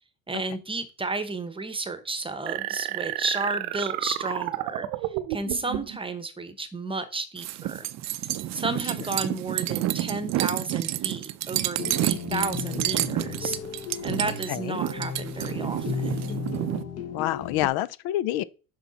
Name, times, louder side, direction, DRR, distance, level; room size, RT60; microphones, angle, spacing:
voice 1, 0.3-7.9 8.5-13.6 14.0-16.4, right 3 dB, 15° right, 0.9 m, -32 dB
sound 1, 2.5-6.0, right 15 dB, 90° right, 0.8 m, -31 dB
sound 2, 7.4-16.8, right 14 dB, 45° right, 0.5 m, -29 dB
sound 3, 11.8-17.7, left 6 dB, 40° left, 0.9 m, -34 dB
voice 2, 14.2-14.8 17.1-18.4, left 14 dB, 75° left, 0.6 m, -28 dB
6.2 x 5.9 x 4.0 m
cardioid pair, 120°, 38 cm